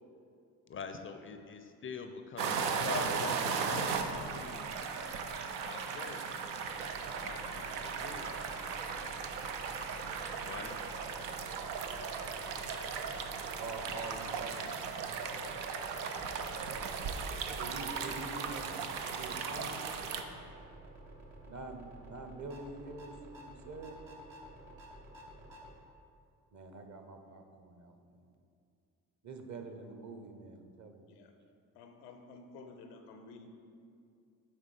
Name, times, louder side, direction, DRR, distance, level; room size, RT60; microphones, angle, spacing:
voice 1, 0.7-4.8 5.6-6.2 7.2-8.3 10.4-10.8 14.5-14.6, left 5 dB, 30° left, 7 dB, 0.4 m, -44 dB
sound 1, 2.4-20.2, right 5 dB, 85° right, 0.5 m, -37 dB
sound 2, 6.5-25.8, right 1 dB, 70° right, 1.1 m, -52 dB
voice 2, 13.6-14.6 17.6-18.7 19.1-19.8 21.5-23.1 23.5-24.0 26.5-28.2 29.2-31.1, right 3 dB, 40° right, 6 dB, 0.8 m, -45 dB
voice 3, 31.8-33.5, left 3 dB, 90° left, 5 dB, 0.6 m, -52 dB
9.0 x 3.6 x 3.3 m, 2.4 s
hypercardioid pair, 45°, 46 cm